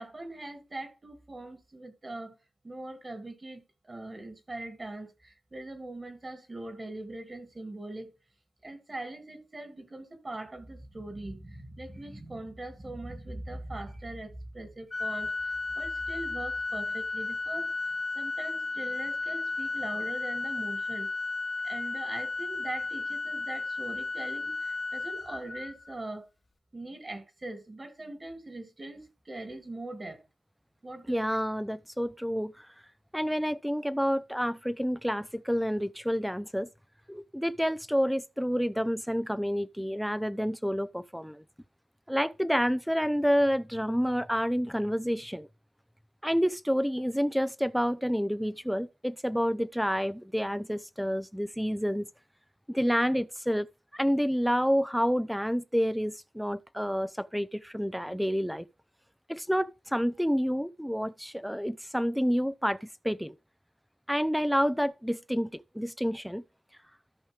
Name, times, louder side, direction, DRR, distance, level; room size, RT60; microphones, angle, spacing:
voice 1, 0.0-2.4 2.6-3.6 3.9-8.2 8.6-15.3 15.8-17.7 18.1-21.1 21.6-26.3 26.7-30.2 30.8-31.2, right 2 dB, 35° right, 2.4 m, -41 dB
Organ, 14.9-26.0, left 3 dB, 45° left, 1.0 m, -34 dB
voice 2, 31.1-32.7 33.1-36.7 37.1-41.4 42.1-45.5 46.2-52.1 52.7-53.7 53.9-58.7 59.3-63.4 64.1-66.4, equal, ahead, 0.7 m, -29 dB
13.5 x 5.4 x 3.3 m
cardioid pair, 55°, 0 cm